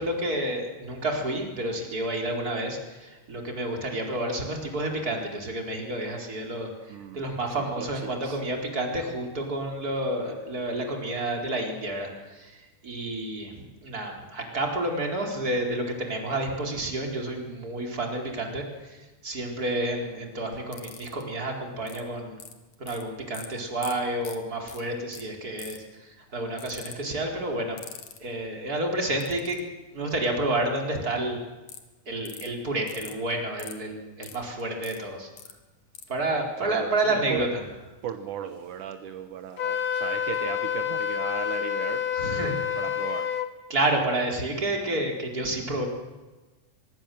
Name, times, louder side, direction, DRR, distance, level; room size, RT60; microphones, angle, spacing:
voice 1, 0.0-22.4 22.8-27.8 28.2-29.6 29.9-31.4 32.1-35.3 36.1-37.6 42.2-42.8 43.7-45.9, right 1 dB, 25° right, 1 dB, 4.6 m, -30 dB
voice 2, 6.9-7.3 7.6-8.4 36.6-37.5 38.0-42.1 42.4-43.3, right 9 dB, 75° right, 8 dB, 2.6 m, -37 dB
sound 1, 20.7-21.2 21.9-22.0 22.4-23.0 23.3-23.5 23.8-23.9 24.2-24.4 24.7-24.8 25.1-25.2 25.6-25.9 26.6-26.9 27.8-28.2 29.2-29.6 31.7-31.8 32.2-32.5 32.9-33.1 33.6-33.7 34.2-35.0 35.4-35.5 35.9-36.0, left 7 dB, 70° left, 3.4 m, -42 dB
Wind instrument woodwind instrument, 39.6-43.5, left 9 dB, 50° left, 1.9 m, -28 dB
24.0 x 23.0 x 7.8 m, 1.2 s
omnidirectional pair, 3.6 m